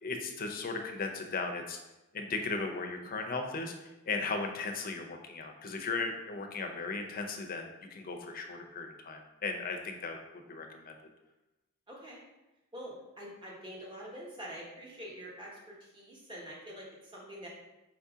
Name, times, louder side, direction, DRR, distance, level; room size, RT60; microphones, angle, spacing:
voice 1, 0.0-1.8 2.1-3.7 4.0-10.9, left 3 dB, 45° left, 4 dB, 0.6 m, -36 dB
voice 2, 11.9-12.2 12.7-17.5, equal, 25° right, -4 dB, 1.2 m, -46 dB
5.0 x 2.7 x 3.6 m, 1.0 s
head